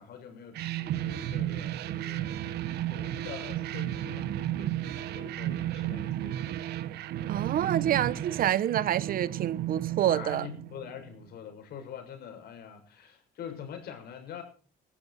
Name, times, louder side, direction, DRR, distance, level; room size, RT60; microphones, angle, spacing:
voice 1, 0.0-2.3 2.9-6.6 10.1-14.4, left 8 dB, 70° left, 6.6 m, -45 dB
sound 1, 0.5-11.1, right 12 dB, 75° right, 1.2 m, -33 dB
voice 2, 7.3-10.5, right 11 dB, 60° right, 1.0 m, -27 dB
21.0 x 13.0 x 4.3 m
cardioid pair, 110°, 17 cm